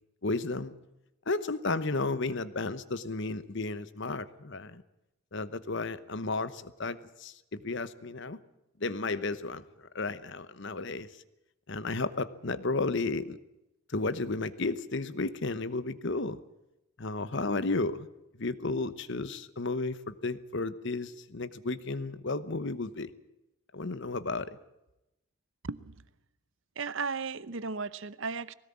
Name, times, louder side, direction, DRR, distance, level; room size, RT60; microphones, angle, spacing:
voice 1, 0.2-0.7 1.3-4.8 5.3-8.4 8.8-11.1 11.7-13.4 13.9-16.4 17.0-18.1 18.4-23.1 23.7-24.6, left 3 dB, 55° left, 14 dB, 1.0 m, -33 dB
voice 2, 26.8-28.5, right 4 dB, 60° right, 16 dB, 0.8 m, -35 dB
20.0 x 18.0 x 8.6 m, 0.92 s
head